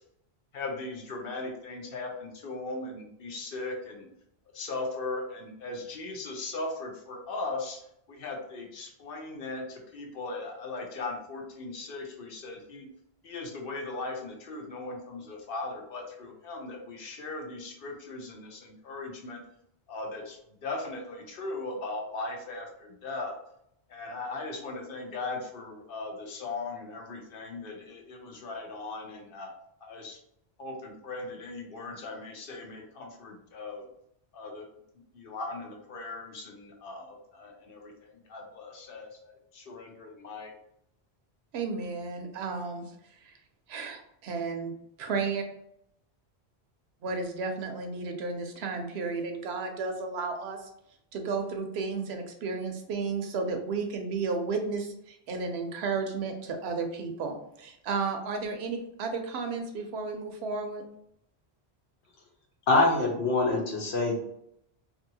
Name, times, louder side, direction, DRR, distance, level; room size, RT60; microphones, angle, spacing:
voice 1, 0.5-4.1 4.5-7.8 8.1-12.9 13.2-19.4 19.9-23.4 23.9-29.5 29.8-30.2 30.6-33.9 34.3-34.7 35.1-40.5, left 3 dB, 60° left, 1 dB, 0.8 m, -38 dB
voice 2, 41.5-42.8 43.2-43.3 43.7-45.4 47.0-50.6 51.1-60.8, right 4 dB, 80° right, 5 dB, 0.8 m, -33 dB
voice 3, 62.7-64.1, left 2 dB, 85° left, -1 dB, 1.1 m, -24 dB
2.7 x 2.6 x 2.7 m, 0.76 s
omnidirectional pair, 1.1 m